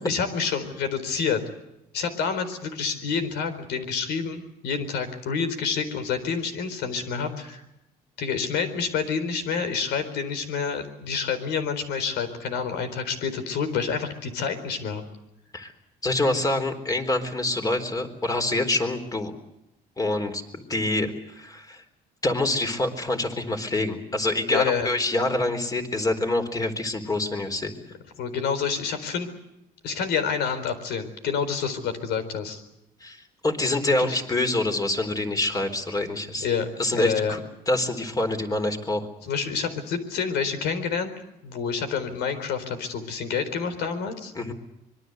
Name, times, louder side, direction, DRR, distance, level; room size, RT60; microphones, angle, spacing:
voice 1, 0.0-1.4 1.9-7.6 8.2-15.0 24.5-24.9 28.2-29.3 29.8-32.6 34.0-34.2 36.4-37.4 39.2-41.1 41.4-44.3, left 6 dB, 80° left, 10 dB, 4.3 m, -28 dB
voice 2, 16.0-19.3 20.0-21.8 22.2-27.7 33.0-36.5 36.8-39.1 44.3-44.5, left 2 dB, 20° left, 6 dB, 4.0 m, -26 dB
25.5 x 22.5 x 8.0 m, 0.87 s
cardioid pair, 110°, 17 cm